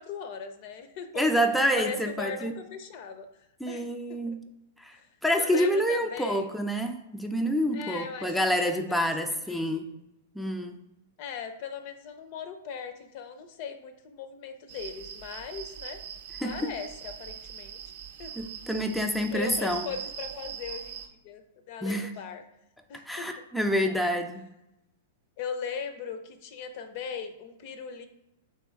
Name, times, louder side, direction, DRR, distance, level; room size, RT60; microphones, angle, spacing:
voice 1, 0.0-1.2 1.7-3.3 3.7-4.4 4.9-5.1 5.4-6.5 7.7-9.9 11.2-16.0 16.4-17.8 18.2-18.3 19.3-22.4 22.9-23.4 25.4-28.1, left 6 dB, 50° left, 9 dB, 0.5 m, -39 dB
voice 2, 1.2-2.5 3.6-4.4 4.8-5.0 5.2-9.9 10.4-10.8 16.4-16.6 18.4-19.9 21.8-22.1 23.1-24.5, equal, ahead, 4 dB, 0.4 m, -27 dB
sound 1, 14.7-21.1, right 8 dB, 65° right, 0.5 m, -41 dB
3.5 x 2.9 x 4.4 m, 0.91 s
hypercardioid pair, 120°, 0 cm